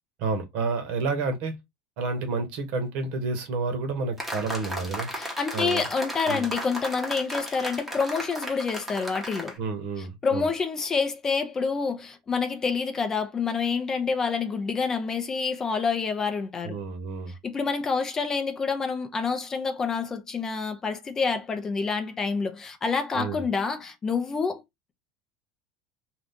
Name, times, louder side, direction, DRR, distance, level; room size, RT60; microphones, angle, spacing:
voice 1, 0.2-1.5 2.0-5.1 5.5-5.9 6.3-6.5 9.6-10.5 16.6-17.4 23.1-23.4, right 4 dB, 60° right, 1.1 m, -30 dB
sound 1, 4.2-9.6, equal, 5° right, 0.8 m, -35 dB
voice 2, 5.1-9.6 10.2-16.8 17.4-24.6, left 5 dB, 20° left, 0.5 m, -27 dB
2.7 x 2.4 x 3.5 m
cardioid pair, 150°, 3 cm